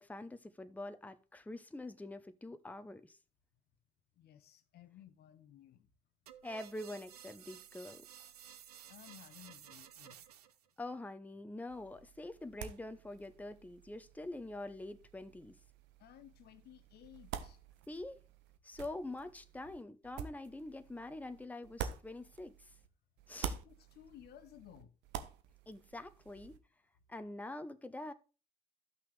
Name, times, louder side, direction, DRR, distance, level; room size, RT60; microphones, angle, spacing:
voice 1, 0.0-3.2 6.4-8.1 10.8-15.6 17.9-18.2 18.6-22.7 23.3-23.6 25.7-26.6 27.1-28.1, left 2 dB, 10° left, 0.8 m, -45 dB
voice 2, 4.2-5.9 8.9-10.2 16.0-17.6 23.4-24.9, left 11 dB, 55° left, 0.8 m, -57 dB
sound 1, 6.3-10.7, right 10 dB, 90° right, 0.5 m, -55 dB
sound 2, 11.7-22.9 23.2-26.6, right 8 dB, 70° right, 0.9 m, -48 dB
13.0 x 5.8 x 3.3 m
hypercardioid pair, 50°, 19 cm